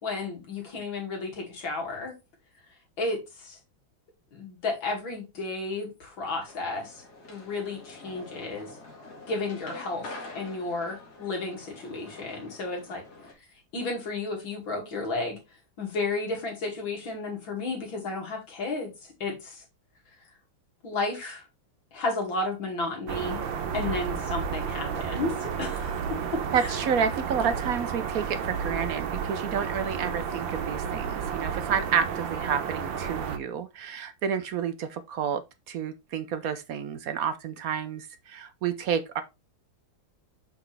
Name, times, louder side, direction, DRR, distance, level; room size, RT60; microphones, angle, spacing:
voice 1, 0.0-2.1 3.0-3.6 4.3-8.8 9.3-13.0 13.7-15.4 15.8-19.6 20.8-21.4 21.9-23.4 23.7-26.7, left 3 dB, 85° left, 3.1 m, -33 dB
sound 1, 6.5-13.3, left 2 dB, 55° left, 2.4 m, -46 dB
sound 2, 23.1-33.4, right 7 dB, 85° right, 1.6 m, -32 dB
voice 2, 26.5-35.4 35.7-39.2, right 7 dB, 65° right, 0.9 m, -30 dB
6.0 x 5.7 x 3.3 m
omnidirectional pair, 2.1 m